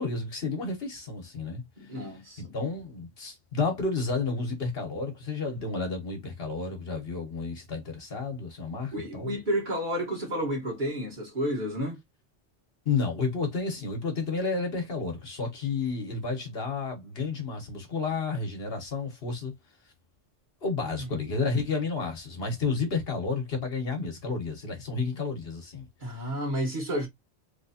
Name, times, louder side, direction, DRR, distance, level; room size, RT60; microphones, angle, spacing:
voice 1, 0.0-1.6 2.5-9.4 12.8-19.5 20.6-25.9 26.2-26.3, left 4 dB, 55° left, 1.3 m, -31 dB
voice 2, 1.8-2.5 8.9-12.0 20.9-21.1 26.0-27.1, equal, 45° right, 1.6 m, -31 dB
3.3 x 2.9 x 2.7 m
omnidirectional pair, 1.2 m